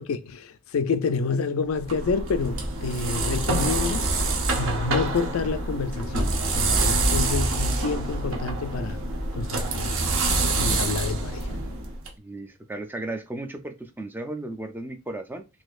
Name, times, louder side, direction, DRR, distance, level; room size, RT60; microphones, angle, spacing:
voice 1, 0.0-4.2 4.5-9.0 9.3-10.0 10.5-11.6, left 4 dB, 75° left, 0.4 m, -28 dB
sound 1, 1.7-12.1, right 2 dB, 65° right, 0.8 m, -26 dB
voice 2, 12.2-15.5, right 2 dB, 10° right, 0.4 m, -35 dB
4.0 x 2.8 x 2.4 m
head